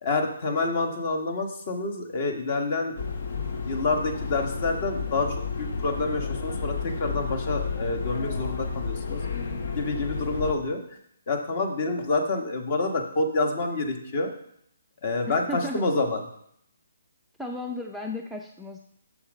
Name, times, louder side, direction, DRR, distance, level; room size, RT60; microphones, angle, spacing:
voice 1, 0.0-2.9 3.7-9.2 9.8-10.8 11.3-14.3 15.0-16.2, left 3 dB, 40° left, 4 dB, 1.3 m, -28 dB
sound 1, 3.0-10.5, left 4 dB, 60° left, 1.0 m, -31 dB
voice 2, 15.3-15.8 17.4-18.8, left 1 dB, ahead, 1 dB, 0.4 m, -34 dB
7.1 x 6.4 x 5.1 m, 0.71 s
hypercardioid pair, 155°, 0 cm